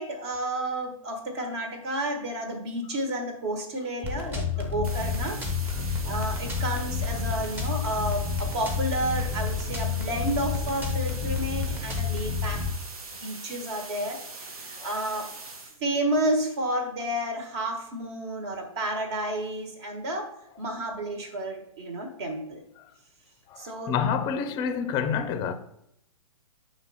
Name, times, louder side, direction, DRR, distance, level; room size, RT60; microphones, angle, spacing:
voice 1, 0.0-5.4 6.0-12.6 13.1-15.3 15.8-20.3 20.6-22.6 23.6-23.9, right 1 dB, 50° right, 1.4 m, -31 dB
sound 1, 4.0-12.7, left 5 dB, 10° right, 0.8 m, -30 dB
sound 2, 4.8-15.8, right 3 dB, 80° right, 1.2 m, -42 dB
voice 2, 23.5-25.5, left 7 dB, 20° left, 0.5 m, -28 dB
5.9 x 3.3 x 5.5 m
hypercardioid pair, 140°, 18 cm